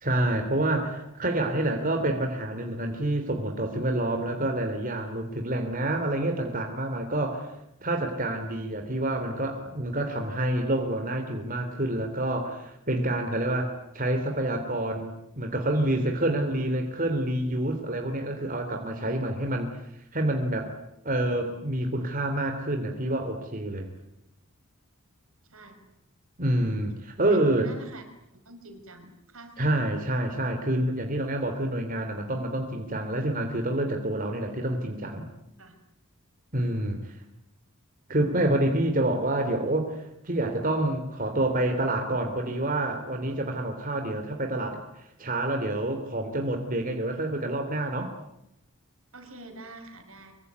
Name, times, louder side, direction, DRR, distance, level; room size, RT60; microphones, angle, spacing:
voice 1, 0.0-7.5 7.8-19.7 20.1-20.7 21.0-23.9 26.4-27.7 29.6-35.3 36.5-37.2 38.1-48.1, right 1 dB, 40° right, 4 dB, 3.1 m, -28 dB
voice 2, 18.9-19.3 25.5-25.8 27.3-28.0 28.4-29.7 35.6-35.8 49.1-50.3, right 2 dB, 70° right, 7 dB, 5.4 m, -46 dB
24.5 x 24.0 x 9.5 m, 0.83 s
head